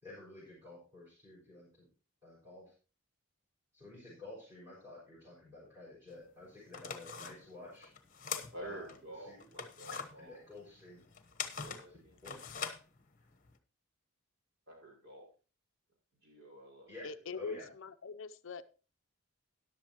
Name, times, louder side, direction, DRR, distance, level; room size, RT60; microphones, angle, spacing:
voice 1, 0.0-1.9 2.2-2.7 3.7-7.9 8.6-8.9 9.2-9.5 10.2-11.1 11.9-12.4 16.9-17.7, left 2 dB, 15° right, -8 dB, 5.8 m, -51 dB
sound 1, 6.1-6.2 6.6-9.0 9.4-13.5, left 6 dB, 35° left, 1.1 m, -43 dB
voice 2, 8.5-10.4 11.6-12.4 14.7-15.3 16.2-16.9, right 1 dB, 50° right, -1 dB, 5.6 m, -49 dB
voice 3, 17.0-18.6, left 4 dB, 60° left, 11 dB, 0.5 m, -43 dB
13.5 x 11.0 x 2.9 m, 0.34 s
head